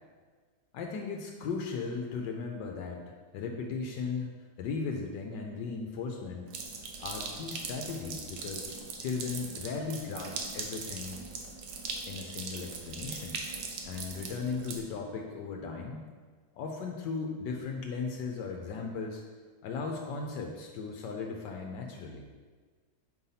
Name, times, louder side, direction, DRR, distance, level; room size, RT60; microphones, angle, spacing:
voice 1, 0.7-4.3 4.6-6.5 7.0-8.7 9.0-11.2 12.1-13.4 13.8-16.1 16.5-19.2 19.6-22.2, left 5 dB, 80° left, 1 dB, 1.3 m, -37 dB
sound 1, 6.5-14.8, right 4 dB, 85° right, 1.4 m, -40 dB
5.0 x 4.1 x 5.6 m, 1.5 s
omnidirectional pair, 1.9 m